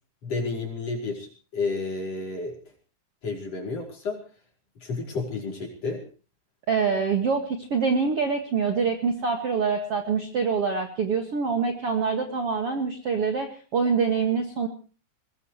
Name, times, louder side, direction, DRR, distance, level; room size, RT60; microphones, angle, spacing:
voice 1, 0.2-2.6 3.2-4.2 4.8-6.1, left 3 dB, 40° left, 1 dB, 6.0 m, -31 dB
voice 2, 6.7-14.7, right 5 dB, 45° right, 4 dB, 2.2 m, -25 dB
21.5 x 21.0 x 3.1 m, 0.37 s
omnidirectional pair, 4.7 m